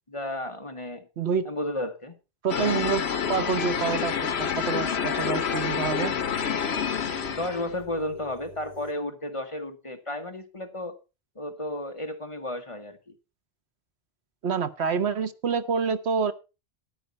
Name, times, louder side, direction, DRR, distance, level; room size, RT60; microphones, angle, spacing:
voice 1, 0.1-1.1 1.4-2.1 7.3-11.0 11.3-13.0, left 1 dB, 30° left, 1.5 m, -33 dB
voice 2, 1.2-1.5 2.4-4.1 4.4-6.1 14.4-16.3, right 6 dB, 80° right, 1.3 m, -27 dB
sound 1, 2.5-7.7, left 7 dB, 75° left, 1.2 m, -28 dB
sound 2, 3.2-8.9, left 1 dB, 50° left, 3.2 m, -48 dB
13.5 x 10.0 x 4.2 m
omnidirectional pair, 1.1 m